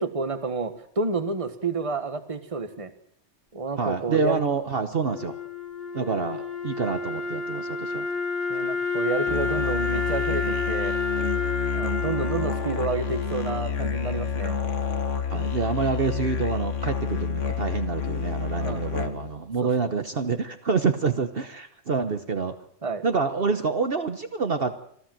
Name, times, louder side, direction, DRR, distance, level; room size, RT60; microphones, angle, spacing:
voice 1, 0.0-2.9 3.5-4.4 8.5-11.0 11.7-14.6 18.5-18.8 19.6-19.7 22.8-23.0, right 3 dB, 30° right, 10 dB, 1.3 m, -30 dB
voice 2, 3.8-5.4 5.9-8.1 15.3-22.5 23.0-24.8, right 5 dB, 50° right, 8 dB, 1.2 m, -27 dB
Wind instrument woodwind instrument, 5.0-14.1, left 4 dB, 40° left, 2.3 m, -30 dB
Musical instrument, 9.3-19.4, left 7 dB, 85° left, 1.9 m, -29 dB
25.5 x 14.5 x 7.6 m, 0.69 s
omnidirectional pair, 1.2 m